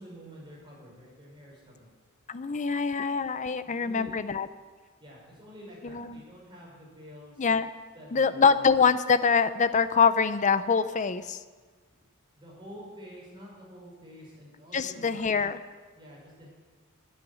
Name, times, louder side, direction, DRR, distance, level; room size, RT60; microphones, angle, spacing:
voice 1, 0.0-1.9 2.7-2.8 3.6-4.2 5.0-7.5 7.9-8.5 12.4-15.2 16.0-16.5, equal, 25° right, -4 dB, 5.7 m, -48 dB
voice 2, 2.3-4.5 5.8-6.2 7.4-7.7 8.1-11.4 14.7-15.6, left 5 dB, 35° left, 13 dB, 0.6 m, -24 dB
11.0 x 9.9 x 9.9 m, 1.4 s
head